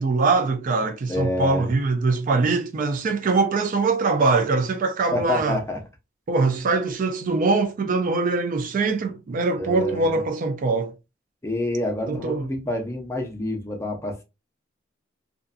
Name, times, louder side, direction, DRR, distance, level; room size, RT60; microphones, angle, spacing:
voice 1, 0.0-5.6 6.3-10.9 12.1-12.4, right 3 dB, 45° right, 0.3 m, -22 dB
voice 2, 1.1-1.7 5.1-5.8 9.6-10.2 11.4-14.2, left 1 dB, 15° left, 0.6 m, -27 dB
2.5 x 2.4 x 2.3 m
head